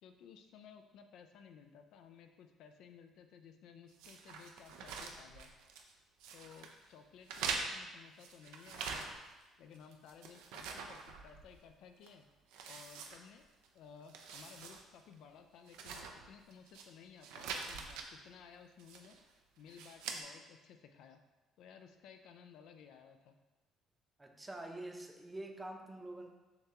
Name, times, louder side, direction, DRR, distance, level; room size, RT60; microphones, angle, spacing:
voice 1, 0.0-5.5 6.3-9.1 9.6-12.3 12.7-13.5 13.7-19.2 19.6-21.2 21.6-23.4, left 7 dB, 70° left, 6 dB, 0.3 m, -57 dB
sound 1, 4.0-5.9 6.2-6.7 7.2-9.4 9.7-11.7 12.0-12.1 12.5-13.7 14.0-14.8 15.1-15.2 15.7-16.8 17.2-18.1 18.8-19.2 19.7-20.2, right 5 dB, 85° right, 0.4 m, -44 dB
voice 2, 24.2-26.3, right 1 dB, 15° right, 3 dB, 0.6 m, -46 dB
6.5 x 2.3 x 2.9 m, 1.1 s
supercardioid pair, 70°, 0 cm